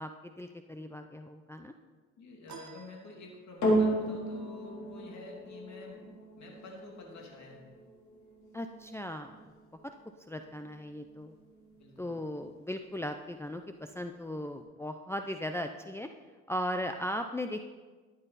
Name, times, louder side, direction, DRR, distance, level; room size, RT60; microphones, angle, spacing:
voice 1, 0.0-1.7 8.5-9.4 10.3-11.3 12.0-16.1 16.5-17.7, left 1 dB, 10° left, 5 dB, 0.6 m, -37 dB
voice 2, 2.2-6.0 6.4-7.7 11.7-12.2, left 2 dB, 65° left, 0 dB, 2.8 m, -48 dB
sound 1, 2.5-3.8, right 6 dB, 65° right, 1.4 m, -52 dB
sound 2, 3.6-12.2 12.9-13.0, right 1 dB, 80° left, 3.6 m, -35 dB
13.5 x 10.0 x 4.2 m, 1.3 s
cardioid pair, 90°, 30 cm